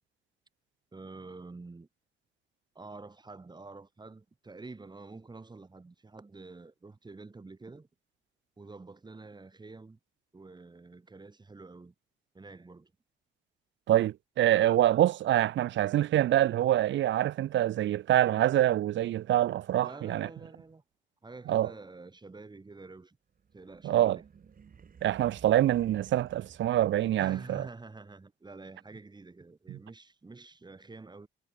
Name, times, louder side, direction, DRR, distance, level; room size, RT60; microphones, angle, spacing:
voice 1, 0.9-1.9 2.7-7.9 8.6-10.0 10.3-11.9 12.3-12.9 19.8-20.8 21.2-23.2 23.5-24.2 27.2-31.3, right 3 dB, 20° right, 2.3 m, -48 dB
voice 2, 13.9-20.3 21.5-21.7 23.8-24.2 25.0-27.6 29.7-29.8, right 13 dB, 70° right, 0.8 m, -25 dB
sound 1, 23.3-27.6, right 6 dB, 45° right, 4.4 m, -55 dB
cardioid pair, 90°, 20 cm